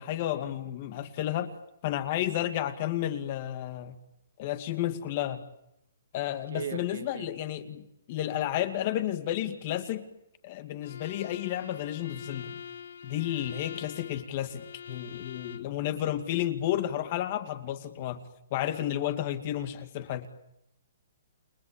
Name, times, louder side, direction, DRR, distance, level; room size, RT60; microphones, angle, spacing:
voice 1, 0.0-1.5 1.8-3.9 4.4-5.5 6.1-10.1 10.4-12.6 13.0-18.2 18.5-20.3, left 12 dB, 30° left, 10 dB, 2.2 m, -32 dB
voice 2, 6.5-7.3, right 7 dB, 75° right, 5 dB, 4.2 m, -37 dB
Bowed string instrument, 10.8-15.8, left 8 dB, 65° left, 1.5 m, -45 dB
30.0 x 21.5 x 8.7 m, 0.80 s
hypercardioid pair, 170°, 0 cm